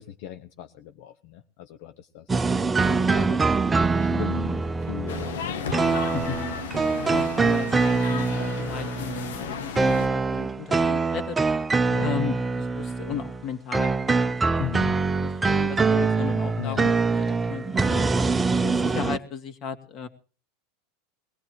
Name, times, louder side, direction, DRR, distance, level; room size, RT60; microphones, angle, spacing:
voice 1, 0.0-2.4 2.8-3.6 4.0-5.6 11.9-12.1 14.6-15.0 16.6-16.9, left 10 dB, 65° left, 9 dB, 0.9 m, -37 dB
sound 1, 2.3-13.5 13.7-19.2, right 4 dB, 15° right, 0.7 m, -24 dB
sound 2, 5.1-10.1, left 6 dB, 85° left, 1.3 m, -34 dB
voice 2, 6.9-11.4 12.0-14.9 15.2-18.1 18.6-20.1, left 8 dB, 40° left, 9 dB, 2.3 m, -36 dB
22.0 x 17.0 x 3.1 m, 0.37 s
hypercardioid pair, 110°, 0 cm